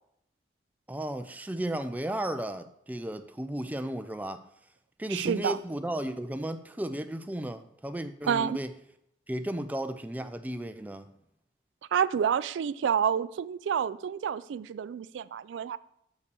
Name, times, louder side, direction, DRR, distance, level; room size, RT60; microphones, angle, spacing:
voice 1, 0.9-4.4 5.0-8.7 9.3-11.1, right 1 dB, 10° right, 0.4 m, -34 dB
voice 2, 5.1-5.6 8.3-8.6 11.9-15.8, right 8 dB, 80° right, 0.3 m, -28 dB
6.7 x 5.5 x 6.7 m
head